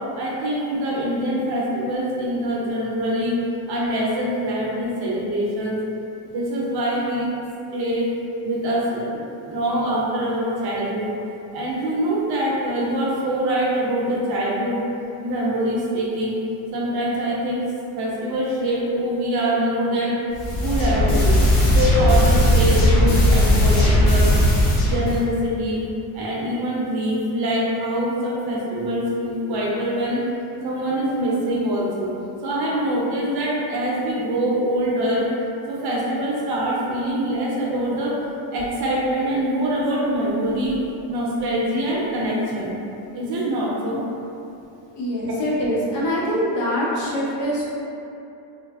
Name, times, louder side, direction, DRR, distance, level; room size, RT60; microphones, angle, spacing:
voice 1, 0.1-3.4 3.7-5.8 6.2-7.3 7.7-8.1 8.4-11.1 11.5-14.8 15.2-16.4 16.7-17.6 17.9-20.1 20.6-21.3 21.7-24.3 24.8-25.8 26.1-30.2 30.6-32.1 32.4-35.3 35.7-38.1 38.5-40.8 41.1-42.7 43.1-44.0, right 1 dB, 50° right, -5 dB, 0.6 m, -24 dB
sound 1, 20.3-25.2, left 1 dB, 85° left, 1.1 m, -17 dB
voice 2, 45.0-47.6, equal, 60° left, -6 dB, 0.8 m, -24 dB
3.1 x 2.0 x 2.3 m, 2.8 s
cardioid pair, 130°, 50 cm